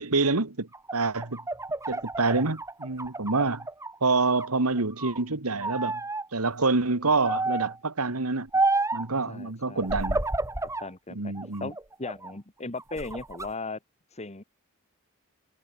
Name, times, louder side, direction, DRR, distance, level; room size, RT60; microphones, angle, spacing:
voice 1, 0.0-1.4 1.9-3.7 4.0-6.0 6.3-8.5 8.9-10.2 11.1-11.7, right 3 dB, 80° right, 1.9 m, -27 dB
sound 1, 0.7-3.9 4.3-5.2 5.6-6.2 7.2-7.8 8.5-9.1 9.8-10.9 11.4-12.3 12.8-13.5, right 2 dB, 15° right, 2.4 m, -30 dB
voice 2, 9.3-9.9 10.8-11.3 11.6-13.8 14.1-14.4, left 3 dB, 30° left, 1.8 m, -37 dB
head